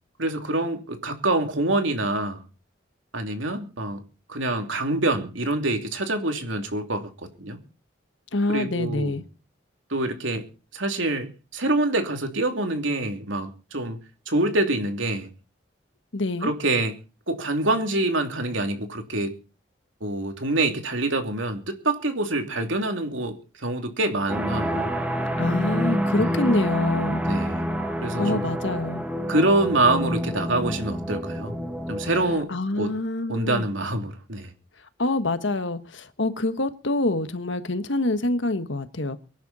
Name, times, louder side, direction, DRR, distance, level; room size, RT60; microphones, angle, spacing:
voice 1, 0.2-2.4 3.1-4.0 4.3-7.1 7.4-7.6 8.5-9.1 9.9-10.4 10.7-14.0 14.3-15.3 16.4-17.0 17.3-19.4 20.0-24.9 26.1-26.4 27.3-27.7 28.0-28.5 29.3-31.5 31.9-32.9 33.3-34.5, right 2 dB, 85° right, 2.9 m, -26 dB
voice 2, 8.3-9.2 16.1-16.5 25.4-27.2 28.2-29.0 32.5-33.7 35.0-39.2, left 2 dB, 75° left, 1.5 m, -26 dB
sound 1, 24.3-32.4, equal, 5° right, 1.4 m, -27 dB
24.0 x 10.5 x 4.2 m
head